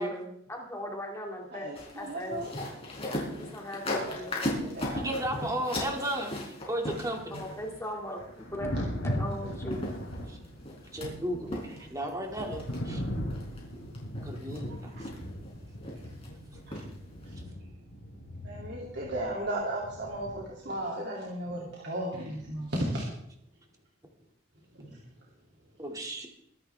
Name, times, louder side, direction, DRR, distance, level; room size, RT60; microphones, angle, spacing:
voice 1, 0.0-1.7 2.0-2.5 3.4-4.4 7.4-8.7 9.0-9.8, left 1 dB, 15° left, 0 dB, 2.4 m, -38 dB
voice 2, 1.5-2.5 4.1-4.2 4.6-5.3 14.7-15.0 16.7-16.8 17.2-17.4 18.4-23.0 24.8-25.0, right 1 dB, 55° right, -3 dB, 2.8 m, -35 dB
sound 1, 1.8-7.8 9.3-9.4 9.7-11.1 11.5-12.1 12.4-12.8 13.3-13.6 13.9-14.6 15.0-15.5 15.8-16.3 16.7-16.9 17.2-17.3, left 1 dB, 30° left, 4.4 m, -36 dB
voice 3, 5.0-6.3 6.7-7.4 10.3-10.4 10.9-13.0 14.2-14.9 25.8-26.3, right 1 dB, 15° right, 2 dB, 2.3 m, -34 dB
Thunder, 7.1-20.8 22.4-22.6, equal, 70° left, 4.3 m, -39 dB
23.0 x 11.0 x 3.5 m, 0.74 s
head